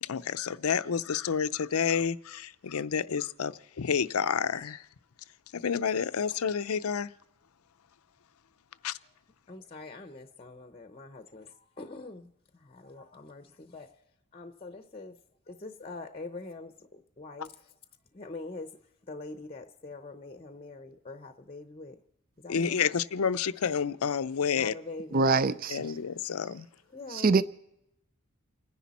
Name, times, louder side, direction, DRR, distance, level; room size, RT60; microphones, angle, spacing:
voice 1, 0.0-4.8 5.5-7.1 8.8-9.0 22.5-24.7 25.7-26.7, left 7 dB, 80° left, 0.5 m, -29 dB
voice 2, 9.5-13.9 14.3-15.2 15.5-17.5 18.1-18.8 19.1-22.0 22.4-23.0 24.6-25.3 26.9-27.4, left 3 dB, 25° left, 0.7 m, -44 dB
voice 3, 25.1-25.8 27.1-27.4, right 4 dB, 40° right, 0.4 m, -24 dB
29.5 x 10.5 x 4.2 m
head